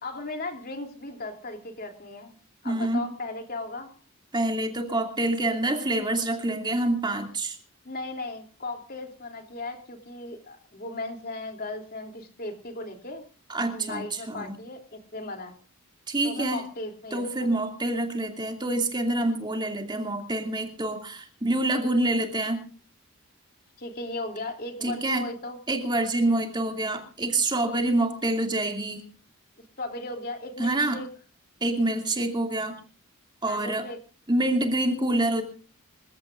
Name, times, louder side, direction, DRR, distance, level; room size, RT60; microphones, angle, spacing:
voice 1, 0.0-2.3 2.6-3.9 7.8-13.3 13.7-15.5 16.2-17.5 23.8-25.6 29.8-31.1 33.4-34.0, left 2 dB, 45° left, 4 dB, 3.1 m, -36 dB
voice 2, 2.6-3.0 4.3-7.6 13.5-14.6 16.1-16.6 17.1-22.6 24.8-25.3 25.7-29.0 30.6-31.0 31.6-32.8 33.4-33.9 34.3-35.4, right 2 dB, 20° right, 3 dB, 2.6 m, -26 dB
27.0 x 16.0 x 2.6 m, 0.38 s
head